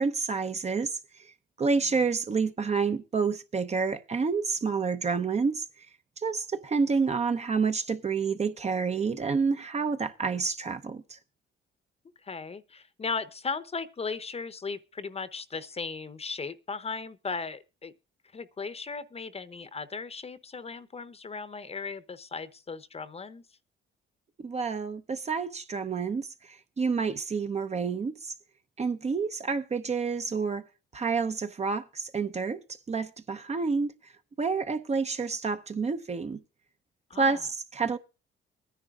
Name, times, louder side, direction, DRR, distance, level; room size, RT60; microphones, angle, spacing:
voice 1, 0.0-1.3 1.6-5.7 6.2-11.2 24.4-28.3 28.8-30.6 30.9-32.6 32.9-33.9 34.4-36.4 37.2-38.0, right 5 dB, 35° right, 0.8 m, -29 dB
voice 2, 12.2-17.9 18.3-23.4 37.1-37.4, left 4 dB, 30° left, 0.9 m, -37 dB
23.0 x 10.0 x 2.4 m
cardioid pair, 90°, 20 cm